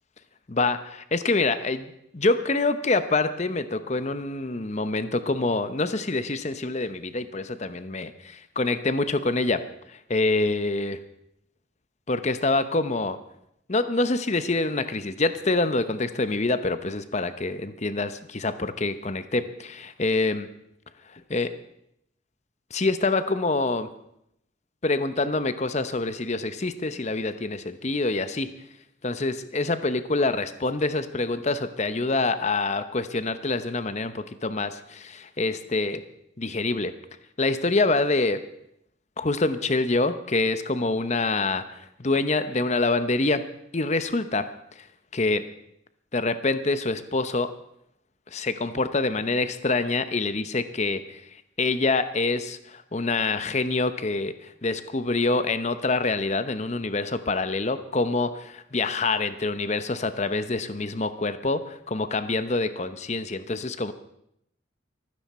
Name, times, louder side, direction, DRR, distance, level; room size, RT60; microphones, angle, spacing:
voice 1, 0.5-9.6 9.9-11.0 12.1-13.2 13.7-20.5 21.1-21.5 22.7-23.9 24.8-28.5 29.0-36.0 36.4-36.9 37.4-38.4 39.2-43.4 43.7-44.5 45.1-45.4 46.1-47.5 48.3-51.2 51.6-63.9, left 3 dB, 35° left, 11 dB, 0.8 m, -26 dB
24.5 x 9.7 x 4.3 m, 0.76 s
head